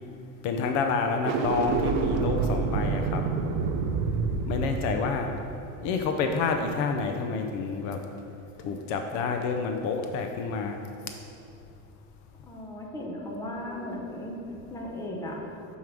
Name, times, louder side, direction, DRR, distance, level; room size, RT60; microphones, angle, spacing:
voice 1, 0.4-3.2 4.4-5.3 5.8-8.0 8.6-10.8, left 5 dB, 55° left, 5 dB, 0.5 m, -28 dB
sound 1, 1.1-6.4, right 5 dB, 75° right, 0.6 m, -28 dB
voice 2, 12.4-14.3 14.7-15.4, left 1 dB, 10° left, -1 dB, 0.6 m, -36 dB
5.4 x 4.8 x 6.0 m, 2.8 s
cardioid pair, 170°, 36 cm